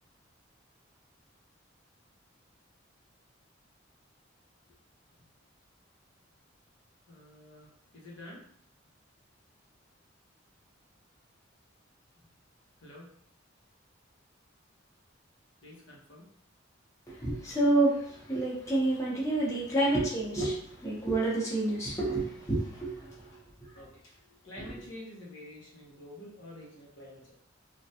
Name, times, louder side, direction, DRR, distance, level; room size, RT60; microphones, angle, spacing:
voice 1, 7.1-7.7 7.9-8.4 12.8-13.1 15.6-16.2 23.7-23.9 24.4-27.3, left 1 dB, 70° left, -3 dB, 0.9 m, -48 dB
voice 2, 17.2-20.6 20.8-23.3 24.6-24.8, right 2 dB, 15° left, -7 dB, 0.8 m, -28 dB
3.2 x 2.2 x 2.7 m, 0.65 s
head